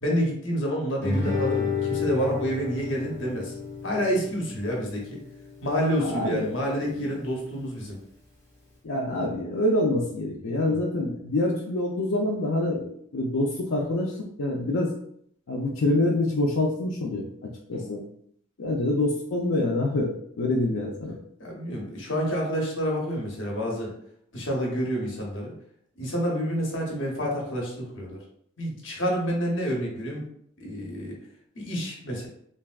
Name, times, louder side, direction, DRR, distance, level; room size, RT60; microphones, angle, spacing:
voice 1, 0.0-3.5 3.8-5.2 5.6-8.0 10.7-10.8 17.7-18.0 21.4-23.9 24.3-25.5 26.0-28.2 28.6-30.2 30.6-31.2 31.5-32.3, equal, 60° left, -1 dB, 0.9 m, -28 dB
Guitar, 1.0-6.1, left 4 dB, 10° left, 0.9 m, -31 dB
voice 2, 6.0-6.5 6.8-7.1 8.8-14.1 14.4-14.9 15.5-17.2 17.7-18.0 18.6-20.1 20.4-21.1, left 1 dB, 80° left, -3 dB, 0.5 m, -26 dB
3.3 x 2.6 x 2.4 m, 0.68 s
head